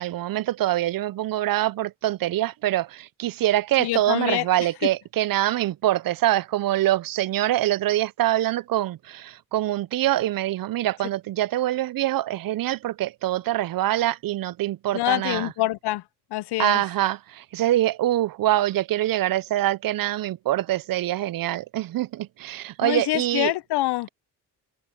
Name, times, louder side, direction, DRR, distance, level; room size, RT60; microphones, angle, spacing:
voice 1, 0.0-15.5 16.6-23.5, right 14 dB, 55° right, 0.6 m, -24 dB
voice 2, 3.8-4.5 4.8-4.9 14.9-16.0 16.3-16.8 22.8-24.1, left 17 dB, 70° left, 0.7 m, -25 dB
supercardioid pair, 60°, 41 cm